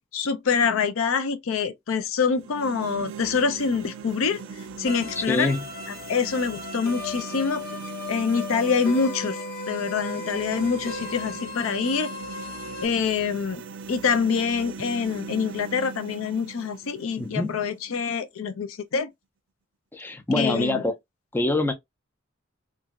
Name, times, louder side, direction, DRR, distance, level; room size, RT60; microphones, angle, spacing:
voice 1, 0.0-4.4 4.8-5.5 6.1-7.6 8.1-9.4 9.7-12.1 12.8-13.6 13.9-19.1 20.3-20.8, left 5 dB, 75° left, 0.5 m, -25 dB
sound 1, 2.2-18.3, right 5 dB, 65° right, 0.4 m, -40 dB
sound 2, 4.9-12.9, left 3 dB, 50° left, 0.8 m, -36 dB
voice 2, 5.2-5.6 17.2-17.6 19.9-20.9 21.3-21.7, left 2 dB, 10° left, 0.3 m, -25 dB
2.9 x 2.5 x 2.3 m
head